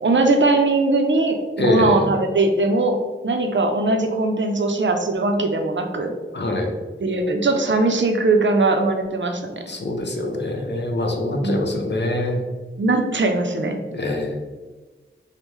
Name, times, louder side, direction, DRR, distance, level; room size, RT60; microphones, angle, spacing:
voice 1, 0.0-3.0 3.2-6.1 7.0-9.5 11.4-11.6 12.8-13.8, right 2 dB, 65° right, 4 dB, 0.5 m, -20 dB
voice 2, 1.6-2.1 6.3-6.7 9.7-12.4 13.9-14.4, left 1 dB, 60° left, 2 dB, 0.6 m, -23 dB
5.3 x 2.1 x 3.1 m, 1.3 s
wide cardioid pair, 50°, 21 cm